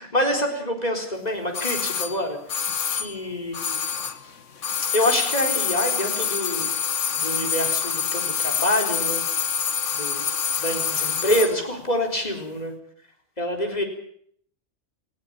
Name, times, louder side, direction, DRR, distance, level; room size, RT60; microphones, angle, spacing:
voice 1, 0.0-2.6 2.9-3.8 4.2-4.3 4.9-6.7 7.1-9.2 9.9-10.3 10.6-12.7 13.4-13.8, left 1 dB, 35° left, 3 dB, 4.2 m, -26 dB
sound 1, 1.5-4.3 4.6-11.6 11.8-11.9, left 7 dB, 85° left, 1.5 m, -26 dB
19.0 x 16.0 x 10.0 m, 0.65 s
omnidirectional pair, 1.2 m